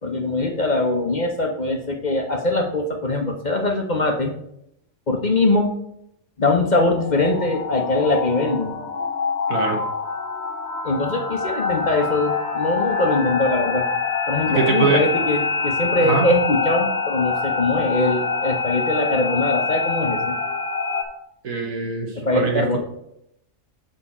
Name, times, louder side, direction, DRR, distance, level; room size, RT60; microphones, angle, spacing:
voice 1, 0.0-4.3 5.1-5.7 6.4-8.8 10.8-13.9 14.3-20.4 22.2-22.8, left 2 dB, 40° left, 2 dB, 0.9 m, -22 dB
sound 1, 6.7-21.0, left 5 dB, 55° left, 1.3 m, -25 dB
voice 2, 14.5-15.0 16.0-16.3 21.4-22.8, right 4 dB, 85° right, 2 dB, 1.8 m, -22 dB
7.0 x 5.5 x 4.2 m, 0.77 s
omnidirectional pair, 1.4 m